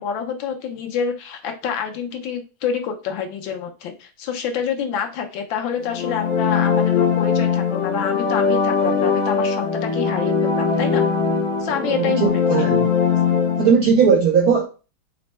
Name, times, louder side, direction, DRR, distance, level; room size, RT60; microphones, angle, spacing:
voice 1, 0.0-11.0 11.6-12.7, left 7 dB, 75° left, 1.4 m, -27 dB
sound 1, 5.8-13.7, left 6 dB, 55° left, 0.7 m, -20 dB
voice 2, 11.8-12.8 13.6-14.6, right 6 dB, 75° right, 0.8 m, -17 dB
4.2 x 2.1 x 4.1 m
omnidirectional pair, 2.2 m